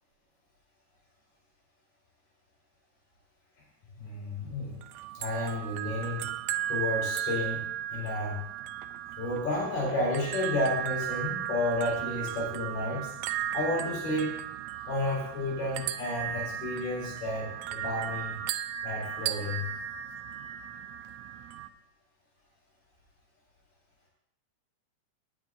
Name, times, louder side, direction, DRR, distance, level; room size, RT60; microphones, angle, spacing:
voice 1, 4.0-4.8 5.1-6.3 6.7-7.6 7.9-8.4 9.2-13.1 13.5-14.3 14.8-18.4 18.8-19.7, left 1 dB, 85° left, -4 dB, 5.8 m, -31 dB
sound 1, 4.8-21.7, right 11 dB, 90° right, 1.5 m, -36 dB
18.5 x 9.0 x 2.6 m, 0.76 s
omnidirectional pair, 3.7 m